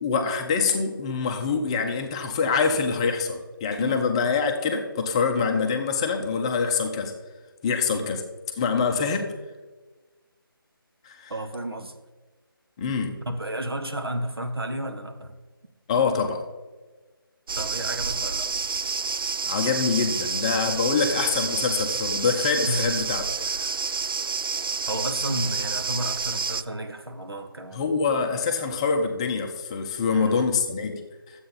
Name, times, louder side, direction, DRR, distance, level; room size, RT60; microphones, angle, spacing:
voice 1, 0.0-7.1 7.6-8.2 8.5-9.3 11.0-11.3 12.8-13.2 15.9-16.4 19.5-23.2 27.7-31.4, left 5 dB, 15° left, 3 dB, 0.6 m, -25 dB
voice 2, 11.3-12.0 13.3-15.4 17.6-18.5 22.6-22.9 23.4-23.8 24.9-27.9 30.1-30.5, right 1 dB, 85° right, 7 dB, 1.3 m, -32 dB
sound 1, 17.5-26.6, right 5 dB, 70° right, 0.4 m, -29 dB
12.0 x 7.9 x 4.1 m, 1.3 s
figure-of-eight pair, 160°, 12 cm